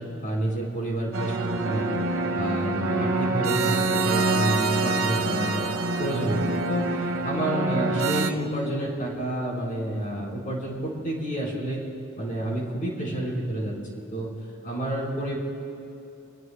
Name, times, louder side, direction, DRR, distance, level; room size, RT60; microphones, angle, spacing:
voice 1, 0.0-1.9 2.3-5.7 6.0-11.8 12.2-13.7 14.1-14.3 14.6-15.4, right 1 dB, 40° left, -3 dB, 4.8 m, -29 dB
sound 1, 1.1-8.3, right 3 dB, 75° right, 1.3 m, -26 dB
27.5 x 21.5 x 2.3 m, 2.7 s
head